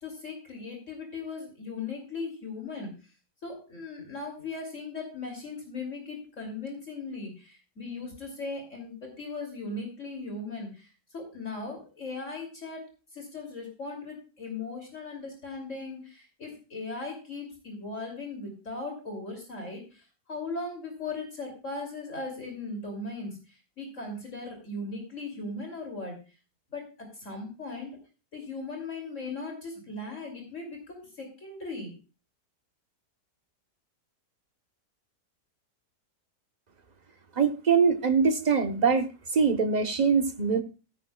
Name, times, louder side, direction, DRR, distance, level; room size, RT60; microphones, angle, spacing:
voice 1, 0.0-2.9 3.4-12.8 13.1-26.2 26.7-28.0 28.3-31.9, left 3 dB, 50° left, 3.3 m, -38 dB
voice 2, 37.4-40.6, right 5 dB, 30° right, 0.9 m, -23 dB
16.5 x 9.5 x 2.3 m
omnidirectional pair, 1.7 m